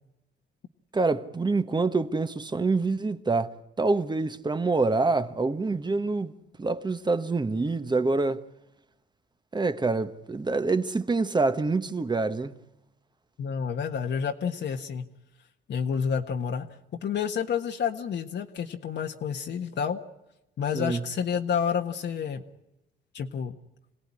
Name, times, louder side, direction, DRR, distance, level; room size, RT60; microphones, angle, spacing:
voice 1, 0.9-6.3 6.6-8.4 9.5-12.6 20.7-21.0, right 3 dB, 20° right, 1.3 m, -26 dB
voice 2, 13.4-15.0 15.7-16.7 17.0-20.0 20.6-22.4 23.1-23.6, left 7 dB, 60° left, 1.5 m, -29 dB
27.0 x 17.5 x 9.9 m
cardioid pair, 90°, 20 cm